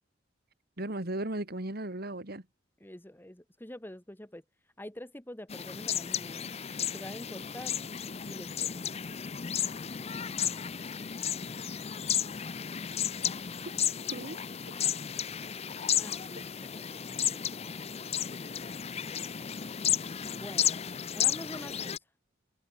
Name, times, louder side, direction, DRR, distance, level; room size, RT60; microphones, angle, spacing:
voice 1, 0.8-2.4 13.6-13.7 14.1-14.4 16.4-16.5, right 1 dB, 55° right, 2.7 m, -36 dB
voice 2, 2.8-4.4 4.8-6.5 6.8-7.8 8.3-8.9 11.4-11.5 15.9-17.6 20.4-22.0, left 1 dB, 10° left, 1.7 m, -46 dB
sound 1, 5.5-22.0, left 9 dB, 35° left, 0.6 m, -33 dB
sound 2, 8.2-13.7, left 2 dB, 80° left, 7.4 m, -61 dB
head